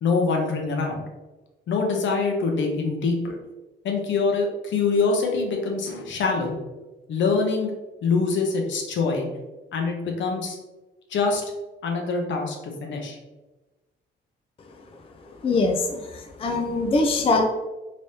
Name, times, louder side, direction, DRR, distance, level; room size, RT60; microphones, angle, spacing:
voice 1, 0.0-1.0 1.7-3.4 3.8-6.6 7.1-7.7 8.0-9.3 9.7-10.6 11.1-11.4 11.8-13.2, left 4 dB, 70° left, 2 dB, 0.8 m, -24 dB
voice 2, 15.2-17.4, left 3 dB, 30° left, 3 dB, 0.4 m, -23 dB
3.3 x 3.1 x 2.7 m, 1.1 s
cardioid pair, 90°, 20 cm